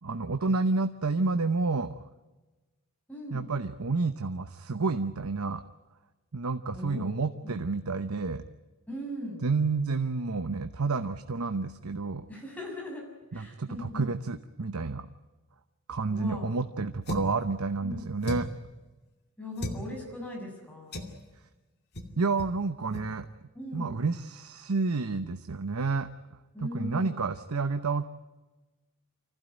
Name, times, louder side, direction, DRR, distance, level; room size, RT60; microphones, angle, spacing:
voice 1, 0.0-1.9 3.3-5.6 6.3-8.4 9.4-12.3 13.3-15.1 15.9-18.5 22.2-23.3 23.7-26.1 26.6-28.0, right 3 dB, 85° right, 10 dB, 0.9 m, -30 dB
voice 2, 3.1-3.5 6.7-7.1 7.4-7.6 8.9-9.4 12.3-13.0 13.3-14.1 16.1-16.6 17.8-18.1 19.4-21.2 23.5-23.9 26.5-27.2, left 1 dB, 5° left, -1 dB, 6.7 m, -39 dB
sound 1, 17.1-17.4 18.2-18.6 19.6-19.8 20.9-21.2 21.9-22.1 22.4-22.6 22.9-23.1, left 1 dB, 50° left, 2.4 m, -35 dB
25.5 x 15.5 x 9.2 m, 1.2 s
head